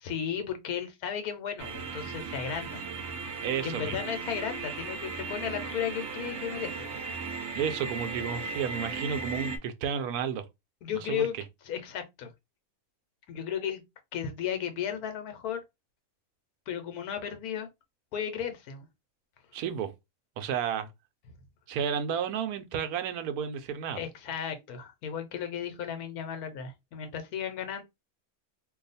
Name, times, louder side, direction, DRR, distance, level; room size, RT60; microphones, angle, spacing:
voice 1, 0.0-2.8 3.6-6.9 10.8-11.4 11.6-12.3 13.3-13.8 14.1-15.6 16.7-17.7 18.1-18.9 23.9-27.8, left 8 dB, 90° left, 1.3 m, -34 dB
sound 1, 1.6-9.6, right 4 dB, 60° right, 0.9 m, -37 dB
voice 2, 3.4-4.1 7.5-10.5 11.0-11.3 19.5-19.9 20.4-20.9 21.7-24.0, right 7 dB, 80° right, 1.1 m, -32 dB
2.7 x 2.3 x 4.0 m
omnidirectional pair, 1.6 m